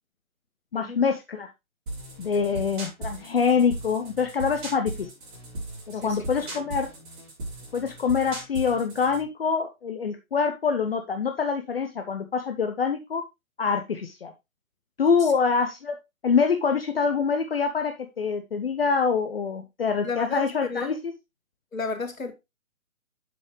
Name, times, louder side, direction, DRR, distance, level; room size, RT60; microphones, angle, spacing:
voice 1, 0.7-1.5 2.2-5.1 5.9-6.9 7.7-13.2 13.6-14.3 15.0-16.0 16.2-20.9, left 5 dB, 45° left, 0.9 m, -25 dB
sound 1, 1.9-9.2, right 1 dB, 35° right, 4.2 m, -37 dB
voice 2, 20.0-20.9 21.7-22.3, left 3 dB, 70° left, 2.1 m, -33 dB
7.3 x 7.1 x 3.1 m
figure-of-eight pair, 140°, 42 cm